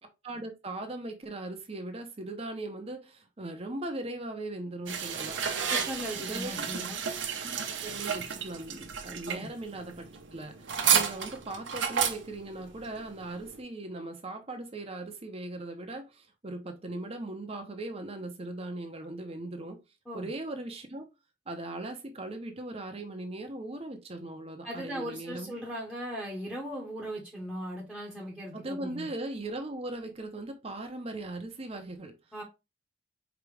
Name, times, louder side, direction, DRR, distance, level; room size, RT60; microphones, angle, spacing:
voice 1, 0.2-5.4 6.2-6.7 7.4-7.5 7.8-19.8 20.1-21.0 21.5-25.5 28.5-32.1, right 2 dB, 30° right, 0.7 m, -39 dB
sound 1, 4.9-13.6, right 7 dB, 80° right, 0.8 m, -32 dB
voice 2, 5.7-7.0 9.3-9.5 20.1-20.3 24.6-29.1 32.3-32.4, equal, 5° left, 1.0 m, -38 dB
4.8 x 2.9 x 3.3 m
head